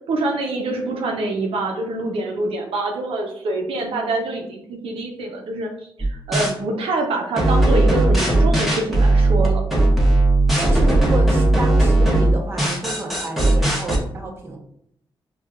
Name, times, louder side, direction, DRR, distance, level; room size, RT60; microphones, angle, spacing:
voice 1, 0.1-5.7 6.0-9.6, right 2 dB, 85° right, 1 dB, 0.6 m, -25 dB
sound 1, 6.0-6.5 7.4-14.0, right 2 dB, ahead, 1.1 m, -17 dB
voice 2, 10.6-14.6, right 2 dB, 25° right, -1 dB, 0.9 m, -30 dB
4.4 x 2.3 x 2.4 m, 0.69 s
cardioid pair, 80°, 9 cm